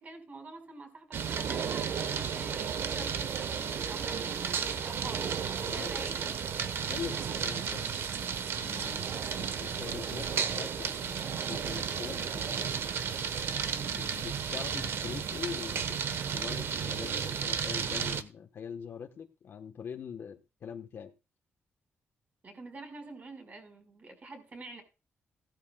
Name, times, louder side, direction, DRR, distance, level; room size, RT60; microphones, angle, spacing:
voice 1, 0.0-5.3 5.7-6.6 9.2-9.5 22.4-24.8, right 2 dB, 35° right, 5.1 m, -47 dB
sound 1, 1.1-18.2, right 7 dB, 65° right, 1.2 m, -33 dB
voice 2, 5.6-5.9 6.9-7.9 8.6-12.8 13.9-16.0 16.3-21.1, left 7 dB, 60° left, 1.3 m, -43 dB
16.5 x 13.0 x 2.4 m
cardioid pair, 110°, 4 cm